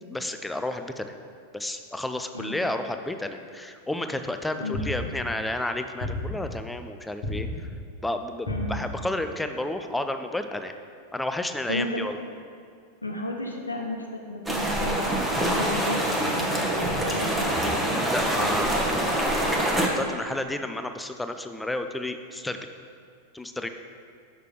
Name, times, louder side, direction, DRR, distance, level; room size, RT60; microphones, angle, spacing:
voice 1, 0.1-1.1 1.5-7.7 8.0-10.7 11.1-12.2 17.9-19.4 19.7-22.6 23.3-23.7, left 1 dB, 5° left, 7 dB, 0.4 m, -31 dB
sound 1, 4.7-5.4 6.0-6.6 7.2-7.9 8.5-9.1, left 2 dB, 40° left, 1.4 m, -32 dB
voice 2, 8.5-8.8 11.7-12.3 13.0-15.1 15.4-17.5 18.3-18.8, left 1 dB, 85° left, 1 dB, 0.9 m, -33 dB
sound 2, 14.5-19.9, right 1 dB, 10° right, 1.0 m, -25 dB
6.6 x 6.0 x 4.8 m, 2.3 s
figure-of-eight pair, 90°, 0 cm